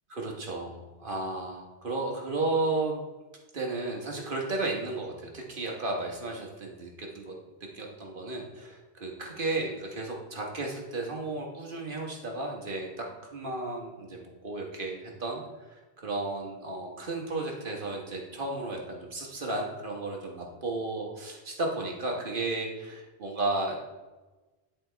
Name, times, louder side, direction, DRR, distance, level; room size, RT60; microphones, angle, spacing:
voice 1, 0.1-3.0 3.5-7.3 7.7-13.1 13.3-15.4 15.7-23.8, right 2 dB, 55° right, 0 dB, 1.4 m, -33 dB
10.5 x 4.4 x 3.3 m, 1.2 s
omnidirectional pair, 1.1 m